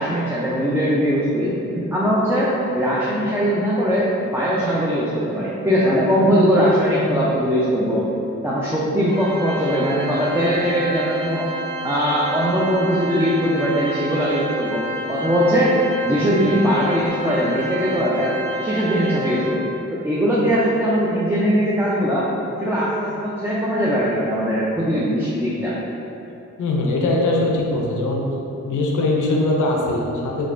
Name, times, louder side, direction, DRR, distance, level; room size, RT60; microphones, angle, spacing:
voice 1, 0.0-8.0 8.4-11.5 11.8-15.7 16.0-18.3 18.6-22.3 22.6-25.7, equal, 10° right, -8 dB, 0.4 m, -20 dB
Organ, 9.1-19.8, right 1 dB, 35° right, 0.9 m, -29 dB
voice 2, 26.6-28.3 28.6-30.5, left 2 dB, 70° left, -1 dB, 0.5 m, -21 dB
3.3 x 2.4 x 2.5 m, 2.8 s
cardioid pair, 50°, 32 cm